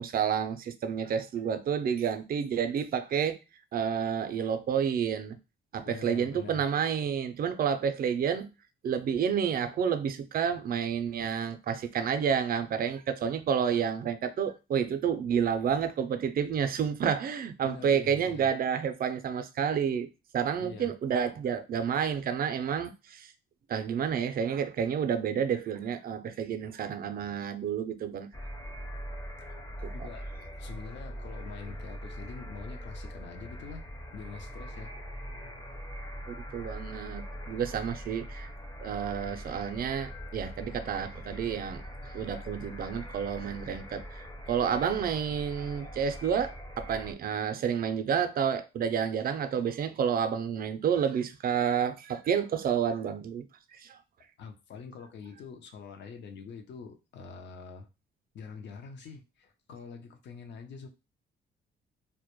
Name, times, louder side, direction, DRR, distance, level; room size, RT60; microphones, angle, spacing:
voice 1, 0.0-3.4 3.7-5.4 5.7-8.5 8.8-20.1 20.3-23.3 23.7-28.3 29.8-29.9 36.3-38.5 38.8-41.8 42.1-44.0 44.5-53.4 53.7-54.0, right 7 dB, 50° right, 0.4 m, -30 dB
voice 2, 5.8-6.6 17.6-18.5 20.6-20.9 29.9-30.2 30.5-33.8 34.1-34.9 54.4-57.9 58.3-60.9, left 5 dB, 65° left, 0.6 m, -45 dB
sound 1, 28.3-47.1, equal, 20° left, 0.5 m, -42 dB
2.2 x 2.1 x 2.9 m
cardioid pair, 90°, 20 cm